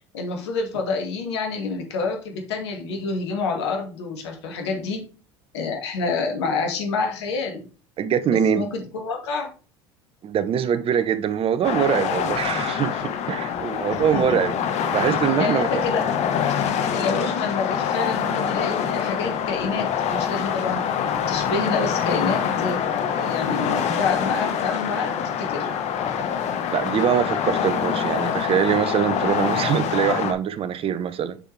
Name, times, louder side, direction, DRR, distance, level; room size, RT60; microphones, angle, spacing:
voice 1, 0.1-5.0 5.5-7.6 8.5-9.5 14.1-14.2 15.4-16.1 16.9-20.8 21.3-22.8 23.1-25.7, left 4 dB, 75° left, 2.4 m, -28 dB
voice 2, 8.0-8.7 10.2-14.5 14.8-15.8 16.9-17.1 26.1-26.2 26.7-31.4, right 8 dB, 40° right, 1.0 m, -23 dB
sound 1, 11.6-30.3, left 8 dB, 50° left, 1.4 m, -25 dB
6.5 x 6.1 x 3.4 m
hypercardioid pair, 75°, 14 cm